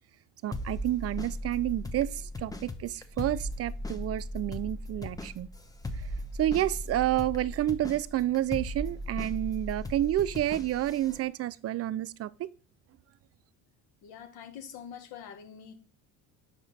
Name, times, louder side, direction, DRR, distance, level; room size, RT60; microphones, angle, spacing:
voice 1, 0.4-5.5 6.0-6.1 6.4-12.5, right 13 dB, 45° right, 0.4 m, -30 dB
sound 1, 0.5-11.2, left 1 dB, 10° left, 0.8 m, -38 dB
voice 2, 14.0-15.7, left 8 dB, 80° left, 1.6 m, -45 dB
6.7 x 4.9 x 4.2 m
supercardioid pair, 95°, 36 cm